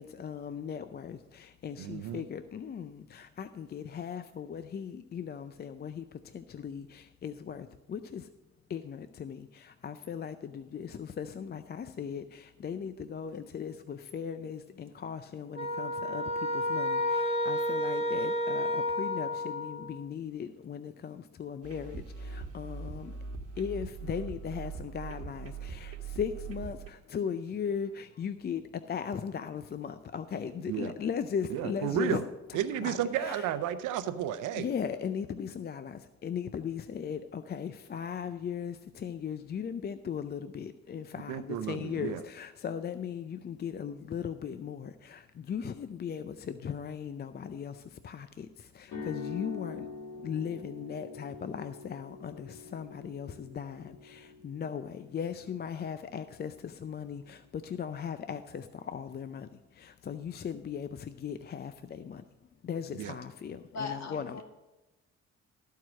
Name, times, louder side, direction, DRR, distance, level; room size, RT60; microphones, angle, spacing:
voice 1, 0.0-8.3 8.7-23.2 23.6-32.2 32.5-33.5 34.6-49.9 50.2-62.3 62.6-64.4, left 7 dB, 35° left, 11 dB, 0.4 m, -38 dB
voice 2, 1.8-2.2 30.7-30.9 31.5-32.2 32.5-34.7 41.3-42.2 62.9-63.2, right 10 dB, 90° right, 12 dB, 0.7 m, -32 dB
sound 1, 15.5-20.0, left 1 dB, 20° right, 1.1 m, -31 dB
sound 2, 21.6-26.9, right 5 dB, 50° right, 1.3 m, -41 dB
sound 3, 48.8-56.9, left 5 dB, 85° left, 2.6 m, -45 dB
voice 3, 63.7-64.4, left 4 dB, 60° left, 5 dB, 1.6 m, -38 dB
13.0 x 4.7 x 6.2 m, 1.0 s
cardioid pair, 90°, 30 cm